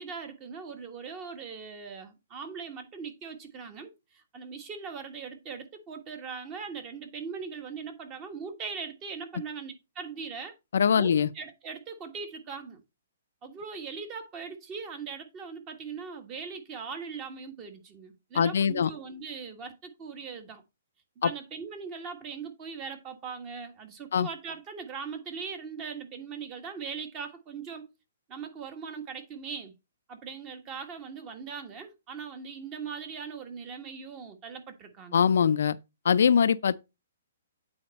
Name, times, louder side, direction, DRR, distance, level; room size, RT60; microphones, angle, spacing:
voice 1, 0.0-10.5 11.0-11.1 11.3-12.8 13.4-20.6 21.2-27.9 28.3-29.7 30.1-35.2, right 5 dB, 25° right, 1.4 m, -40 dB
voice 2, 10.7-11.3 18.3-18.9 21.2-21.3 24.1-24.3 35.1-35.8 36.0-36.8, left 7 dB, 70° left, 0.4 m, -22 dB
8.6 x 4.3 x 4.1 m
hypercardioid pair, 155°, 0 cm